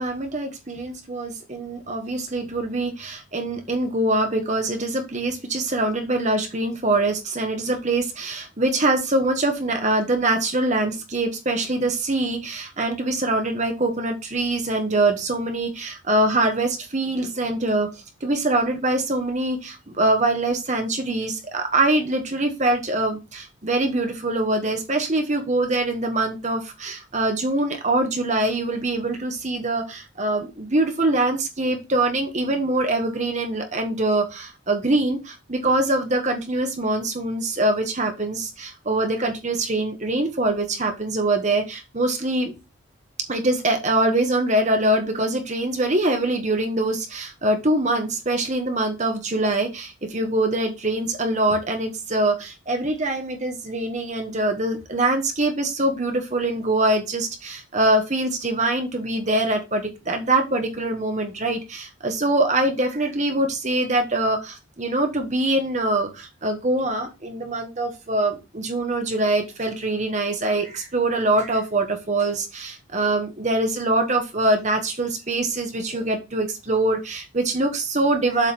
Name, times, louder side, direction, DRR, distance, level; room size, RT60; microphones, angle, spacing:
voice 1, 0.0-17.9 18.2-42.5 43.3-78.5, right 2 dB, 35° right, 4 dB, 1.3 m, -23 dB
7.6 x 3.6 x 6.0 m, 0.25 s
head